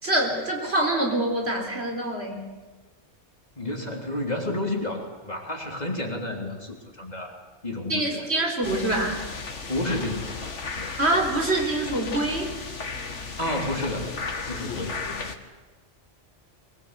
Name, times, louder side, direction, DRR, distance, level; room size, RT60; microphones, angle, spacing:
voice 1, 0.0-2.5 7.9-9.3 11.0-12.5, right 1 dB, 60° right, 1 dB, 4.5 m, -25 dB
voice 2, 3.6-7.3 7.6-8.2 9.7-10.5 13.4-14.2 14.4-15.0, left 1 dB, 35° left, 1 dB, 3.4 m, -30 dB
sound 1, 8.6-15.4, left 4 dB, 75° left, 2.0 m, -35 dB
23.5 x 20.5 x 8.1 m, 1.3 s
omnidirectional pair, 1.2 m